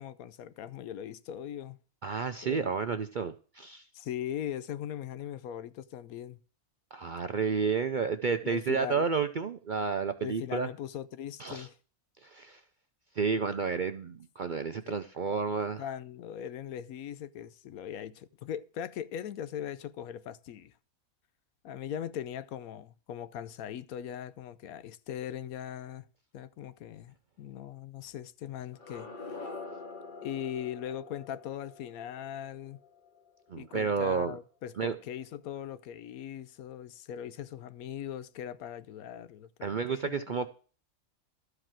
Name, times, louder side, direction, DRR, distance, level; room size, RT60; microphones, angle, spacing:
voice 1, 0.0-1.8 2.4-2.8 3.9-6.4 8.4-9.1 10.2-11.8 14.9-15.0 15.8-20.7 21.6-26.1 26.3-29.4 30.2-32.8 33.6-40.5, left 10 dB, 85° left, 1.1 m, -40 dB
voice 2, 2.0-3.9 6.9-10.7 11.4-11.7 12.2-12.6 13.2-15.8 33.5-34.4 34.8-35.0 39.6-40.5, right 5 dB, 60° right, 0.5 m, -31 dB
sound 1, 28.7-33.6, left 3 dB, 35° left, 1.6 m, -46 dB
13.0 x 4.9 x 7.4 m
omnidirectional pair, 1.5 m